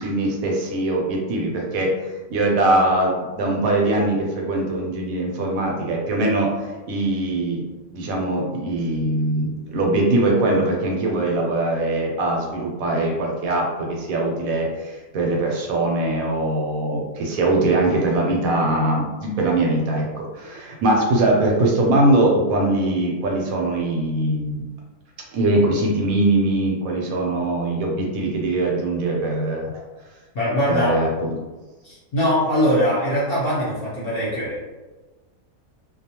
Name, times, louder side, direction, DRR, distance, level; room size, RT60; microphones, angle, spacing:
voice 1, 0.0-1.9 2.3-6.5 6.9-7.6 7.9-24.6 25.3-29.7 30.7-31.1, right 2 dB, 75° right, -1 dB, 1.0 m, -21 dB
voice 2, 30.3-31.0 31.8-34.7, equal, 50° left, -8 dB, 0.8 m, -22 dB
2.3 x 2.2 x 2.8 m, 1.2 s
omnidirectional pair, 1.6 m